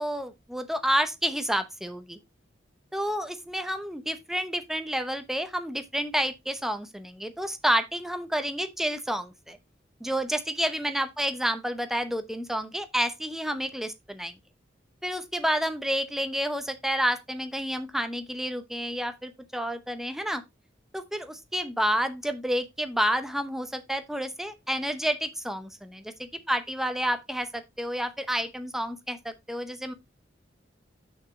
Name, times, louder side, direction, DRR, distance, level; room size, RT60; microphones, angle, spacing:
voice 1, 0.0-2.2 2.9-9.6 10.0-14.3 15.0-20.4 20.9-29.9, equal, ahead, 0.8 m, -29 dB
6.2 x 6.0 x 3.7 m
head